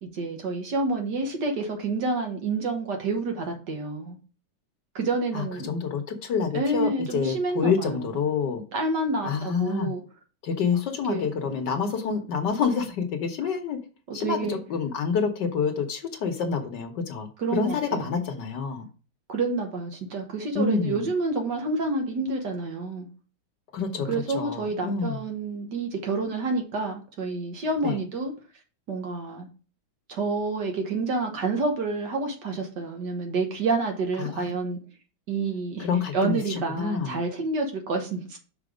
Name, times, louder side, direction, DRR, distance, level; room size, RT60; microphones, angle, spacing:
voice 1, 0.0-4.2 5.0-5.7 6.5-8.1 8.7-10.0 11.1-11.3 14.1-14.6 17.4-18.2 19.3-23.1 24.1-28.3 28.9-29.5 30.1-34.8 35.3-35.9 36.1-38.4, right 3 dB, 60° right, 3 dB, 1.8 m, -28 dB
voice 2, 5.3-8.6 9.2-9.9 10.4-13.8 14.1-18.9 20.5-21.1 23.7-25.3 27.8-28.0 34.2-34.5 35.4-35.5 35.8-37.2, left 6 dB, 60° left, 6 dB, 1.4 m, -28 dB
6.0 x 4.5 x 4.9 m, 0.36 s
omnidirectional pair, 2.2 m